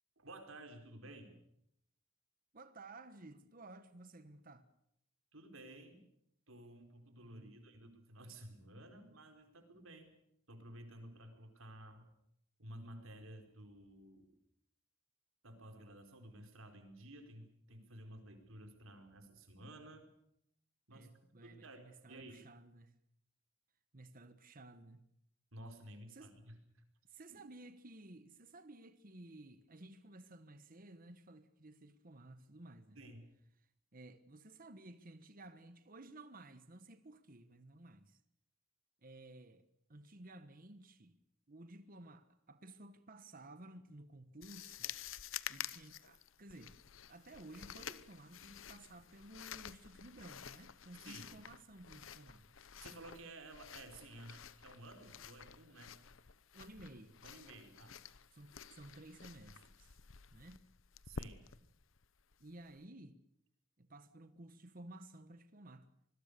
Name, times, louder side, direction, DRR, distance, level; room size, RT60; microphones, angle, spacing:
voice 1, 0.2-1.4 5.3-6.0 6.5-10.2 10.5-12.1 12.6-14.3 15.4-20.1 20.9-21.1 21.4-22.4 25.5-26.6 27.3-27.4 33.0-33.3 51.0-51.4 52.8-56.0 57.2-58.0 61.0-61.4, right 1 dB, 75° right, 4.6 m, -54 dB
voice 2, 2.5-4.7 7.2-7.6 20.9-23.0 23.9-25.1 26.1-26.3 27.1-33.0 33.9-38.2 39.0-39.6 39.9-41.2 41.5-44.9 45.5-46.8 47.1-52.5 56.5-57.2 58.3-59.9 60.3-60.6 62.4-63.2 63.8-65.9, right 2 dB, 40° right, 1.3 m, -55 dB
sound 1, 44.4-62.8, left 8 dB, 70° left, 0.9 m, -51 dB
25.5 x 21.0 x 6.8 m
head